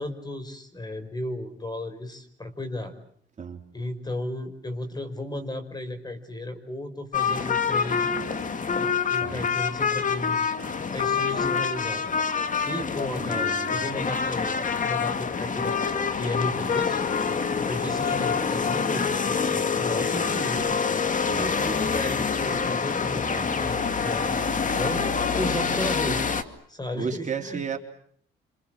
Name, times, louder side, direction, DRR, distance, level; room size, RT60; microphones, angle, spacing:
voice 1, 0.0-2.9 3.7-8.2 8.8-10.6 10.9-12.1 12.6-17.0 17.6-20.7 21.3-26.2 26.7-27.6, left 1 dB, 20° left, 9 dB, 5.6 m, -34 dB
sound 1, 7.1-26.4, left 5 dB, 40° left, 2.3 m, -26 dB
voice 2, 9.2-9.5 13.2-13.9 21.3-21.5 26.1-26.2 26.9-27.8, right 6 dB, 40° right, 3 dB, 3.6 m, -33 dB
28.0 x 27.0 x 7.7 m, 0.63 s
cardioid pair, 90°, 20 cm